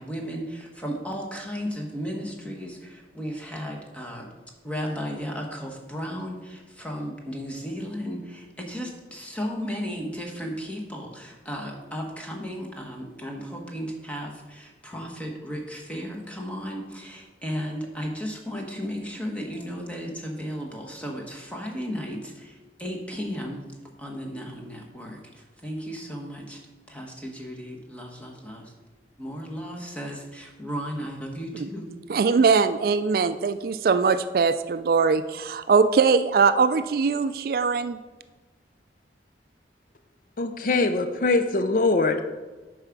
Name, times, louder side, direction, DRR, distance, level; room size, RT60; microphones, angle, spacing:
voice 1, 0.0-4.3 4.6-23.7 24.0-26.6 26.9-28.7 29.2-31.9, equal, 10° left, 0 dB, 1.2 m, -35 dB
voice 2, 32.1-38.0, right 5 dB, 55° right, 12 dB, 0.3 m, -21 dB
voice 3, 40.4-42.2, left 3 dB, 50° left, 9 dB, 0.5 m, -22 dB
8.9 x 4.9 x 5.9 m, 1.3 s
head